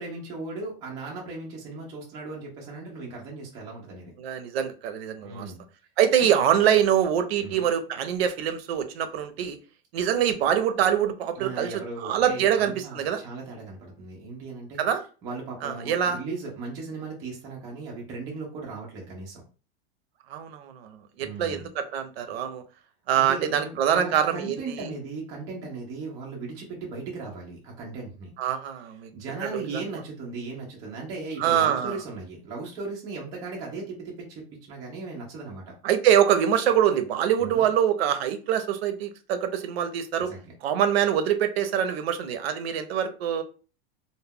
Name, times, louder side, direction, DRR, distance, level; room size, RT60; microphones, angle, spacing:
voice 1, 0.0-4.1 5.2-5.6 6.2-6.4 7.4-7.6 11.4-14.8 15.2-19.4 21.2-21.7 23.1-28.3 29.1-35.8 37.4-37.7 40.2-40.5, right 3 dB, 10° right, -2 dB, 0.3 m, -37 dB
voice 2, 4.2-5.4 6.0-9.6 9.9-13.2 14.8-15.0 15.6-16.2 20.3-22.6 23.1-24.9 28.4-29.1 29.4-29.8 31.4-32.0 35.8-40.3 40.6-43.4, right 9 dB, 85° right, 8 dB, 0.6 m, -24 dB
2.2 x 2.1 x 3.4 m, 0.36 s
supercardioid pair, 175°, 30 cm